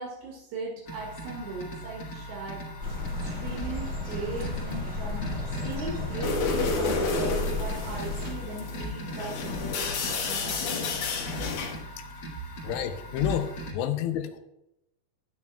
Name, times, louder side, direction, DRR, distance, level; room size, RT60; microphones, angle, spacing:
voice 1, 0.0-2.6 3.2-11.0, right 3 dB, 80° right, -3 dB, 4.0 m, -39 dB
sound 1, 0.8-13.7, equal, 40° left, 1.6 m, -39 dB
sound 2, 2.8-8.3, left 2 dB, 30° right, 1.5 m, -33 dB
sound 3, 6.2-11.8, left 4 dB, 65° left, 2.8 m, -31 dB
voice 2, 12.6-14.4, left 10 dB, 90° left, 7 dB, 2.9 m, -30 dB
12.5 x 9.4 x 2.3 m, 0.86 s
omnidirectional pair, 4.9 m